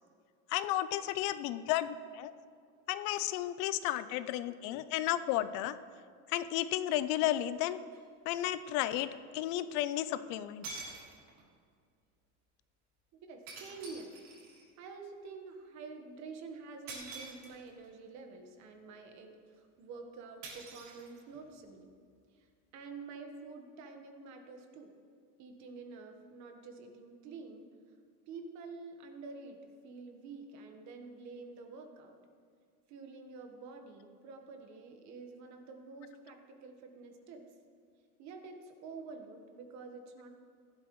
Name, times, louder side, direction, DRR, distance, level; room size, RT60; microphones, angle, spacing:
voice 1, 0.5-2.3 2.9-5.8 6.3-7.8 8.2-10.9, left 13 dB, 60° left, 14 dB, 0.6 m, -33 dB
sound 1, 7.9-8.0 10.1-10.2 10.6-11.5 13.5-14.7 16.9-17.9 20.4-21.5, right 3 dB, 75° right, 3.5 m, -47 dB
voice 2, 13.3-14.1 14.8-21.9 22.3-22.5 22.7-24.9 25.4-27.7 28.3-32.2 32.9-37.4 38.2-40.3, right 4 dB, 50° right, 5 dB, 1.4 m, -48 dB
15.5 x 11.5 x 3.2 m, 2.1 s
cardioid pair, 160°, 36 cm